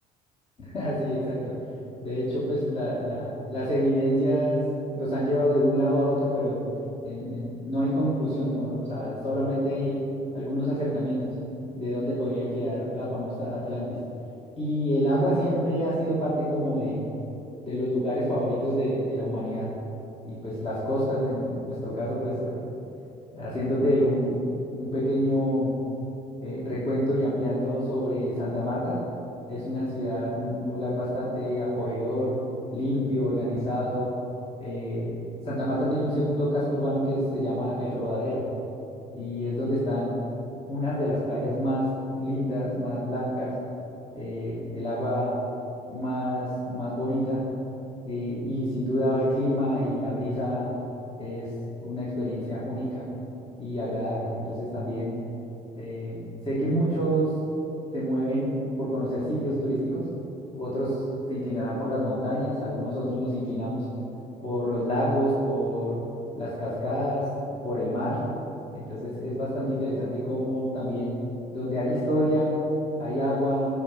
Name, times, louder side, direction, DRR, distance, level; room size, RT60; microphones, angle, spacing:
voice 1, 0.6-1.5 2.0-4.6 4.9-6.6 7.0-10.0 10.3-11.3 11.7-14.0 14.6-17.0 17.6-19.7 20.2-22.6 23.3-24.4 24.8-25.7 26.4-29.0 29.5-32.4 32.7-34.1 34.6-35.2 35.4-38.4 39.1-40.1 40.7-41.9 42.1-43.5 44.1-45.3 45.9-47.4 48.0-50.7 51.2-51.5 51.8-53.1 53.6-55.2 55.7-57.3 57.9-60.0 60.5-61.0 61.3-63.8 64.4-66.0 66.3-67.3 67.6-68.2 68.7-71.1 71.5-72.6 73.0-73.7, equal, 35° left, -8 dB, 2.6 m, -27 dB
14.5 x 5.2 x 5.6 m, 2.9 s
cardioid pair, 110°, 17 cm